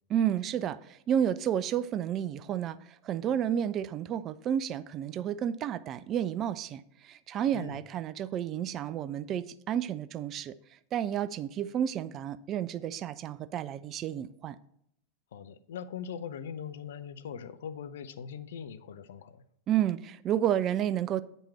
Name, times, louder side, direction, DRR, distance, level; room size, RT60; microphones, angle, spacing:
voice 1, 0.1-10.5 10.9-14.6 19.7-21.2, right 10 dB, 30° right, 14 dB, 0.3 m, -31 dB
voice 2, 15.3-19.4, left 7 dB, 60° left, 13 dB, 0.5 m, -41 dB
8.6 x 5.4 x 4.2 m, 0.74 s
figure-of-eight pair, 90°, 0 cm